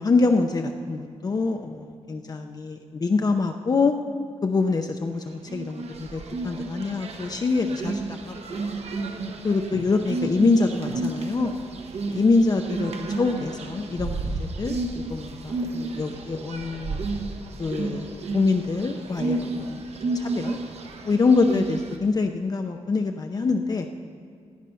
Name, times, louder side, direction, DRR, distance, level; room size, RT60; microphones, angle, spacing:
voice 1, 0.0-3.9 4.4-8.7 9.4-11.5 12.1-14.3 14.6-17.0 17.6-19.8 20.1-20.6 21.1-23.9, left 3 dB, 35° left, 5 dB, 0.6 m, -25 dB
sound 1, 5.5-22.0, right 3 dB, 65° right, 1.3 m, -32 dB
16.5 x 10.5 x 5.6 m, 2.2 s
wide cardioid pair, 145°, 11 cm